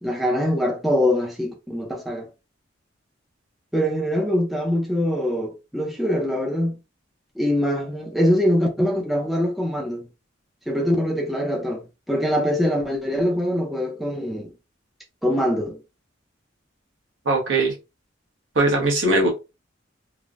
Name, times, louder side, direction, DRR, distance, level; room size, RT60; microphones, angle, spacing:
voice 1, 0.0-2.3 3.7-6.7 7.4-10.1 10.7-14.5 15.2-15.8, equal, ahead, 0.5 m, -23 dB
voice 2, 17.2-17.7 18.5-19.3, right 2 dB, 75° right, 1.0 m, -20 dB
3.1 x 2.0 x 2.4 m
head